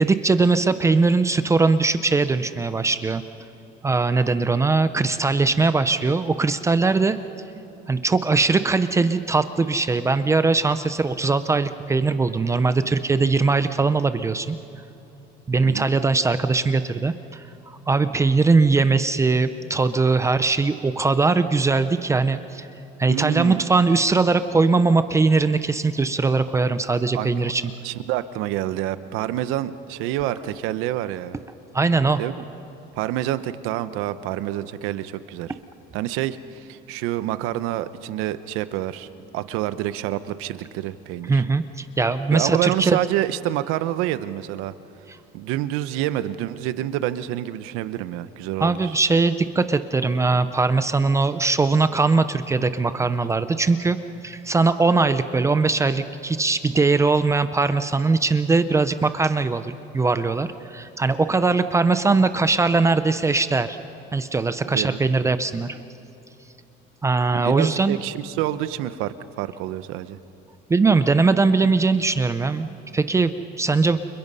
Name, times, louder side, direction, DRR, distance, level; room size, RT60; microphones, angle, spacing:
voice 1, 0.0-3.2 3.8-7.2 7.9-14.6 15.5-22.7 23.0-27.6 31.7-32.2 41.3-43.0 48.6-54.0 54.2-63.8 64.1-65.8 67.0-68.0 70.7-74.0, right 3 dB, 15° right, 11 dB, 0.5 m, -20 dB
voice 2, 23.1-23.7 27.1-27.5 27.8-31.4 32.2-32.4 33.0-35.5 35.9-39.1 39.3-41.4 42.3-44.7 45.3-49.0 64.7-65.0 67.3-70.2, right 13 dB, 85° right, 13 dB, 0.9 m, -27 dB
30.0 x 29.0 x 5.5 m, 2.9 s
cardioid pair, 165°, 21 cm